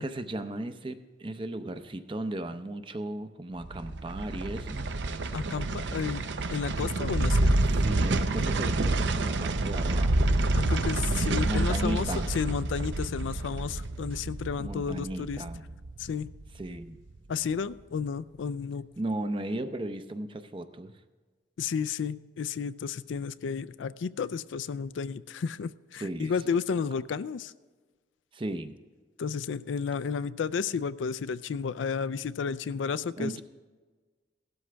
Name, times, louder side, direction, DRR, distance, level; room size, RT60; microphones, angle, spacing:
voice 1, 0.0-4.9 7.6-10.3 11.1-12.3 14.6-15.6 16.6-17.0 19.0-20.9 26.0-26.6 28.3-28.8 33.2-33.4, right 1 dB, 25° right, 10 dB, 0.6 m, -36 dB
sound 1, 3.6-16.8 17.1-17.2, right 2 dB, 70° right, 0.6 m, -28 dB
voice 2, 5.3-7.5 10.5-15.4 16.0-16.3 17.3-18.9 21.6-27.5 29.2-33.4, left 6 dB, 80° left, 16 dB, 0.4 m, -32 dB
16.0 x 12.5 x 3.4 m, 1.4 s
head